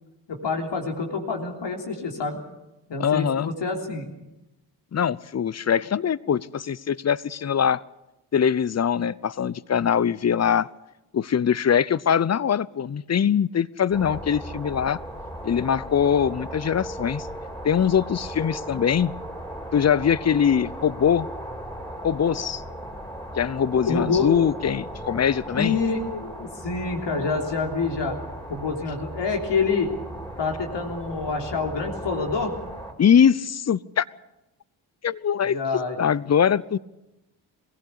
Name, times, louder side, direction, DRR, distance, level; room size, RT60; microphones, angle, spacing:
voice 1, 0.3-2.4 2.9-4.1 23.9-24.3 25.6-28.2 28.5-29.9 30.4-32.6 35.5-36.0, left 4 dB, 60° left, 3.5 m, -27 dB
voice 2, 3.0-3.5 4.9-7.8 8.3-10.7 11.1-15.0 15.4-17.3 17.6-19.1 19.7-21.3 22.0-22.6 23.4-25.8 33.0-34.0 35.0-35.6 36.0-36.8, left 8 dB, 35° left, 0.8 m, -22 dB
sound 1, 13.9-32.9, right 1 dB, 10° left, 5.1 m, -37 dB
22.5 x 16.5 x 8.3 m
hypercardioid pair, 45°, 48 cm